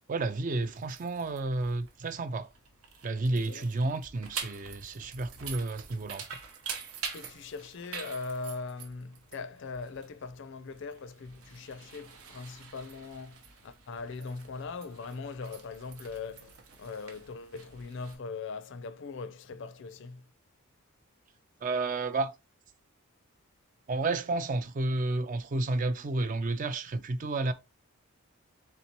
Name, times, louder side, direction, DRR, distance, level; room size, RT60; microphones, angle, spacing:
voice 1, 0.1-2.5 3.0-6.4 21.6-22.3 23.9-27.5, right 2 dB, 35° right, 0.3 m, -31 dB
sound 1, 0.6-18.2, right 6 dB, 75° right, 0.8 m, -46 dB
voice 2, 3.3-3.6 7.1-20.2, left 4 dB, 55° left, 0.4 m, -40 dB
4.2 x 3.5 x 2.9 m
head